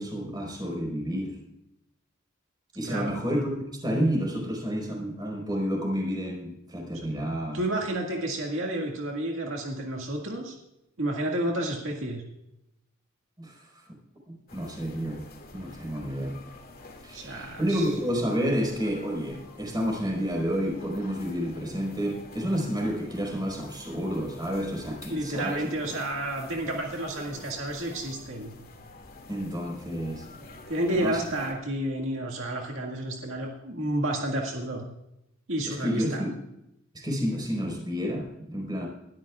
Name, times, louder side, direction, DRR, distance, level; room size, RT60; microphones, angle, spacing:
voice 1, 0.0-1.4 2.7-3.5 3.8-7.6 13.4-13.7 14.3-15.2 15.5-16.4 17.0-25.6 29.3-30.3 30.9-31.2 35.7-36.3 36.9-38.9, equal, 20° right, -1 dB, 4.6 m, -30 dB
voice 2, 2.8-3.2 6.9-7.1 7.5-10.5 11.0-12.2 17.1-17.9 25.1-28.5 30.7-34.8 35.5-36.2, right 1 dB, 70° right, 0 dB, 2.0 m, -31 dB
sound 1, 14.5-31.5, left 3 dB, 50° left, 2.3 m, -47 dB
21.0 x 13.0 x 2.4 m, 0.84 s
head